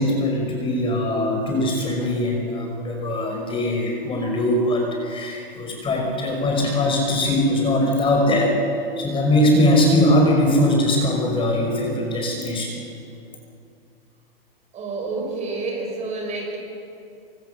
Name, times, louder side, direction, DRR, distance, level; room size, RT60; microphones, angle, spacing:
voice 1, 0.0-8.5 9.0-12.7, left 1 dB, 15° left, 0 dB, 5.4 m, -21 dB
voice 2, 14.7-16.6, right 3 dB, 25° right, 1 dB, 5.5 m, -29 dB
25.0 x 24.5 x 7.0 m, 2.6 s
hypercardioid pair, 140°, 30 cm